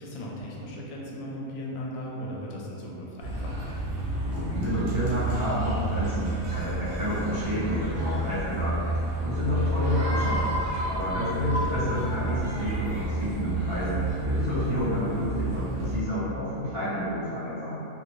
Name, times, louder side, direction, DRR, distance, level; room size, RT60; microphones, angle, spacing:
voice 1, 0.0-3.7 5.7-5.8 11.7-12.0, equal, 80° left, -4 dB, 1.0 m, -37 dB
sound 1, 3.2-16.0, right 1 dB, 65° right, 1.0 m, -30 dB
voice 2, 4.2-10.6 10.8-17.8, equal, 50° right, -12 dB, 1.2 m, -30 dB
3.0 x 2.3 x 3.0 m, 2.9 s
omnidirectional pair, 1.4 m